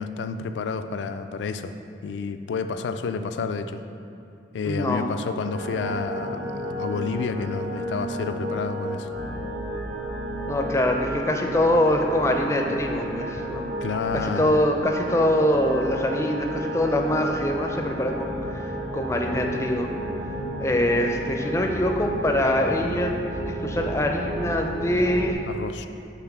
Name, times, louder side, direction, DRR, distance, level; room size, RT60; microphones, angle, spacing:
voice 1, 0.0-1.8 2.0-3.8 4.5-9.1 13.8-14.6 25.5-25.9, left 5 dB, 85° left, 9 dB, 0.3 m, -30 dB
voice 2, 4.7-5.1 10.5-13.6 14.1-19.9 20.6-25.4, left 1 dB, 15° left, 2 dB, 0.4 m, -24 dB
sound 1, 5.5-25.3, right 1 dB, 45° right, 0.6 m, -32 dB
5.8 x 3.5 x 5.9 m, 2.6 s
head